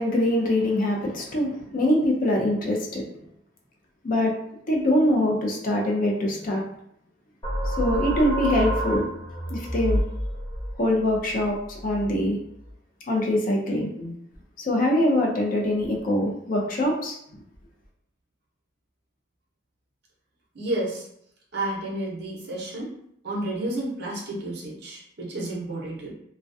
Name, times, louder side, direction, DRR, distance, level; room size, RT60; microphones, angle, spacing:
voice 1, 0.0-3.0 4.0-4.3 4.7-6.6 7.7-9.0 9.5-10.0 10.8-12.4 13.1-14.1 14.7-17.2, left 1 dB, 40° left, 0 dB, 0.4 m, -23 dB
sound 1, 7.4-12.7, equal, 20° left, 0.9 m, -29 dB
voice 2, 20.5-21.1 21.5-22.9 23.2-26.1, right 1 dB, 55° right, -4 dB, 0.7 m, -31 dB
2.3 x 2.1 x 2.5 m, 0.74 s
head